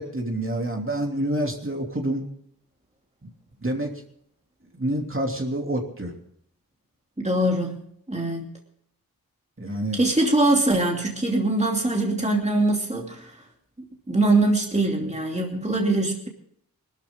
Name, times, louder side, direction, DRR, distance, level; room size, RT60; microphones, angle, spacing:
voice 1, 0.0-2.3 3.6-3.9 4.7-6.1 9.6-10.0, right 1 dB, 35° right, 1 dB, 2.9 m, -27 dB
voice 2, 7.2-7.8 8.1-8.5 9.9-13.3 14.1-16.3, right 2 dB, 20° right, 1 dB, 2.7 m, -22 dB
20.5 x 13.0 x 3.7 m, 0.68 s
wide cardioid pair, 50°, 35 cm